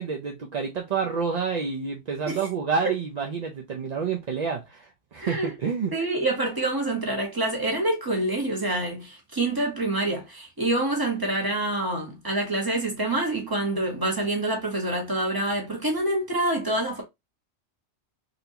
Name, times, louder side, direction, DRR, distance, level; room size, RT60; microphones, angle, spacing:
voice 1, 0.0-5.9, right 6 dB, 50° right, 0.5 m, -28 dB
voice 2, 5.2-5.5 5.9-17.0, right 2 dB, 20° right, 1.2 m, -26 dB
4.1 x 2.7 x 2.8 m
omnidirectional pair, 1.2 m